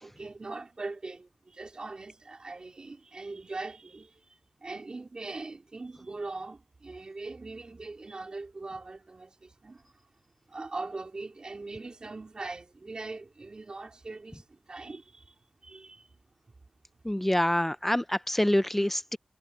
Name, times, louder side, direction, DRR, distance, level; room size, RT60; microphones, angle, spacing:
voice 1, 0.0-9.9 10.5-15.3 15.6-16.1, right 3 dB, 45° right, 3.4 m, -41 dB
voice 2, 17.1-19.2, left 1 dB, 10° left, 0.6 m, -26 dB
cardioid pair, 60°, 2 cm